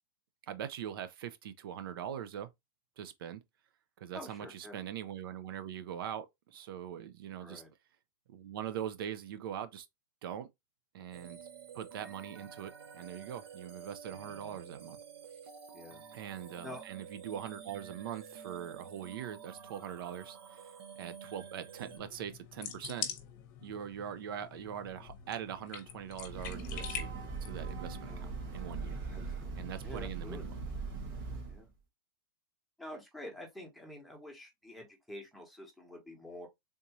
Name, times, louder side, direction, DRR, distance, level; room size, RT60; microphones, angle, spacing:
voice 1, 0.5-2.5 3.0-3.4 4.0-7.6 8.3-9.9 10.2-10.5 10.9-11.4 11.7-15.0 16.1-20.7 21.0-23.1 23.6-28.1 28.5-29.0 29.6-30.5, right 9 dB, 70° right, 0.5 m, -42 dB
voice 2, 4.1-4.8 7.4-7.7 14.2-14.6 15.7-16.0 16.6-16.8 28.0-28.3 29.1-29.5 29.8-30.5 31.5-31.7 32.8-36.5, left 1 dB, ahead, 1.0 m, -48 dB
sound 1, 11.1-22.0, right 7 dB, 90° right, 0.9 m, -50 dB
sound 2, 21.8-29.3, left 9 dB, 50° left, 0.8 m, -45 dB
Breathing / Train, 26.1-31.6, right 4 dB, 45° right, 1.5 m, -40 dB
3.6 x 2.6 x 2.9 m
supercardioid pair, 150°, 12 cm